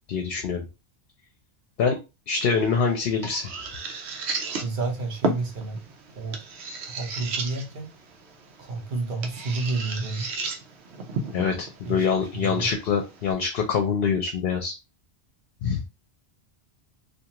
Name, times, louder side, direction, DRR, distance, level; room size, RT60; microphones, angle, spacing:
voice 1, 0.1-0.7 1.8-2.0 2.3-3.5 11.3-14.7 15.6-15.8, left 6 dB, 65° left, 0.8 m, -25 dB
sound 1, 2.4-13.3, right 3 dB, 90° right, 0.9 m, -35 dB
voice 2, 4.6-5.8 6.2-6.4 6.9-7.9 8.6-10.3 11.8-12.1 12.3-12.7, right 3 dB, 55° right, 0.9 m, -30 dB
2.5 x 2.4 x 2.9 m
omnidirectional pair, 1.1 m